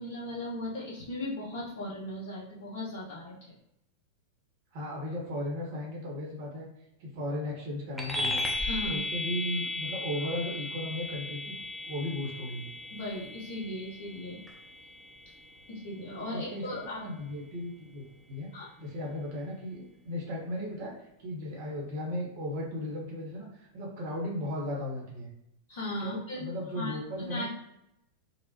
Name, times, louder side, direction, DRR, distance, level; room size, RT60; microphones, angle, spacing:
voice 1, 0.0-3.5 8.6-9.0 12.9-14.4 15.7-17.0 18.5-18.7 25.7-26.4 26.7-27.5, left 1 dB, 55° left, -4 dB, 1.2 m, -37 dB
voice 2, 4.7-6.7 7.0-8.4 8.8-11.5 11.9-12.7 16.3-16.6 17.0-18.5 18.8-23.5 23.7-25.3 26.0-27.5, left 1 dB, 50° right, -2 dB, 1.0 m, -36 dB
sound 1, 8.0-17.8, left 2 dB, ahead, 0.6 m, -37 dB
4.1 x 2.0 x 2.8 m, 0.82 s
figure-of-eight pair, 90°, 0 cm